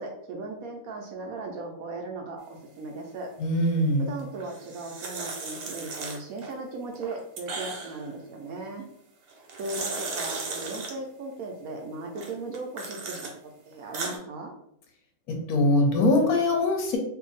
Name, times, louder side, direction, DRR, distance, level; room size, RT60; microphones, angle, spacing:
voice 1, 0.0-3.3 4.0-8.9 9.6-14.5, right 3 dB, 70° right, 2 dB, 0.9 m, -37 dB
voice 2, 3.4-4.1 15.3-17.0, left 1 dB, 70° left, 2 dB, 1.1 m, -22 dB
sound 1, 4.4-6.5 6.9-8.1 9.3-10.9 12.2-13.3 13.7-14.2, right 3 dB, 85° right, 1.4 m, -36 dB
2.8 x 2.6 x 3.8 m, 0.75 s
omnidirectional pair, 1.8 m